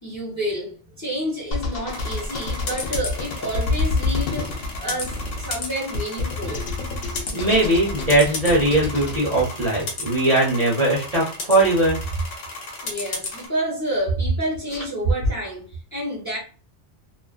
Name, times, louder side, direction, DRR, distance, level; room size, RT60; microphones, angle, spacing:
voice 1, 0.0-6.7 12.8-16.4, equal, 15° left, 0.8 m, -29 dB
sound 1, 1.5-9.2, left 3 dB, 60° left, 0.7 m, -28 dB
sound 2, 1.9-13.5, left 3 dB, 80° left, 1.1 m, -34 dB
voice 2, 7.3-12.0 14.7-14.8, right 2 dB, 40° right, 0.6 m, -20 dB
2.4 x 2.4 x 2.3 m
omnidirectional pair, 1.3 m